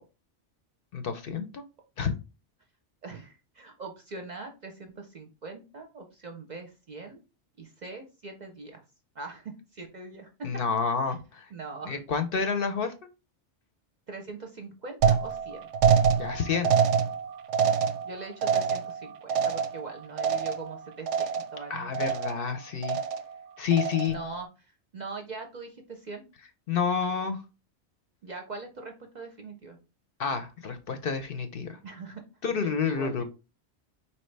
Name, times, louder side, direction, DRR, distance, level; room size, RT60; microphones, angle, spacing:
voice 1, 0.9-1.6 2.0-2.1 10.4-11.5 11.9-12.9 16.2-16.7 21.7-23.0 23.6-24.2 26.7-27.4 30.2-31.8 32.4-33.2, left 6 dB, 60° left, 8 dB, 0.7 m, -29 dB
voice 2, 3.0-7.2 7.6-8.8 9.2-10.5 11.1-11.2 11.5-12.0 14.1-15.6 18.0-21.9 24.1-26.2 28.2-29.8 31.8-32.2 32.6-33.2, right 3 dB, 50° right, 4 dB, 0.6 m, -42 dB
sound 1, 15.0-20.8 21.1-21.6 21.9-22.5 22.8-23.4 23.7-24.3, right 7 dB, 90° right, 0.9 m, -26 dB
4.2 x 3.0 x 3.2 m, 0.30 s
omnidirectional pair, 1.2 m